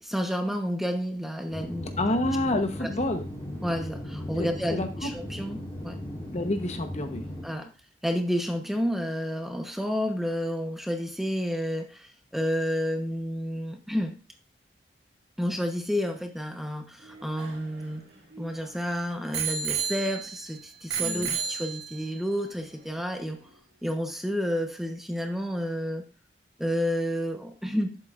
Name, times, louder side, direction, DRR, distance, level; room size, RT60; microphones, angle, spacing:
voice 1, 0.0-1.9 2.8-2.9 3.6-6.0 7.4-7.7 8.0-14.2 15.4-18.0 18.4-23.4 23.8-26.0 26.6-28.0, equal, ahead, 4 dB, 1.0 m, -30 dB
sound 1, 1.5-7.4, left 1 dB, 20° left, 3.9 m, -37 dB
voice 2, 2.0-3.3 4.4-5.1 6.3-7.7 21.0-21.4, left 1 dB, 40° left, 6 dB, 1.0 m, -29 dB
Bicycle bell, 17.0-18.7 19.3-20.5 20.9-22.2 22.9-23.0, right 7 dB, 75° right, 2.0 m, -32 dB
11.5 x 7.9 x 2.5 m, 0.33 s
head